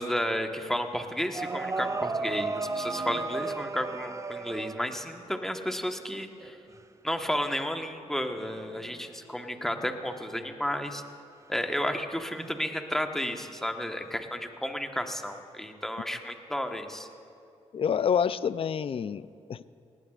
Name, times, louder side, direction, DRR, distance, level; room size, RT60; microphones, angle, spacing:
voice 1, 0.0-6.6 7.0-11.0 11.5-17.1, equal, 5° left, 5 dB, 1.3 m, -32 dB
sound 1, 0.7-0.8 1.3-5.1 6.4-6.8 8.4-8.6 12.4-12.7 14.1-14.2, right 3 dB, 20° right, 0.4 m, -34 dB
sound 2, 1.0-3.2 6.6-8.9, right 4 dB, 80° right, 3.8 m, -51 dB
voice 2, 17.7-19.7, left 7 dB, 45° left, 17 dB, 0.4 m, -28 dB
19.0 x 18.0 x 2.5 m, 2.5 s
supercardioid pair, 50°, 14 cm